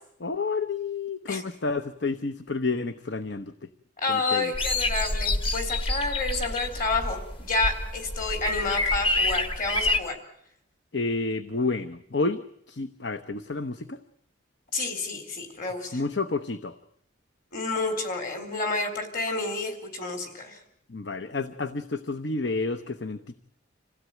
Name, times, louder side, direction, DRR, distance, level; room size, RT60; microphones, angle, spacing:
voice 1, 0.2-3.5 4.1-4.5 10.9-14.0 15.9-16.8 20.9-23.3, left 3 dB, 60° left, 11 dB, 0.9 m, -30 dB
voice 2, 4.0-10.2 14.7-16.0 17.5-20.6, left 3 dB, 45° left, 6 dB, 4.0 m, -29 dB
sound 1, 4.5-10.0, left 2 dB, 25° left, 1.3 m, -28 dB
26.5 x 16.5 x 9.3 m, 0.74 s
head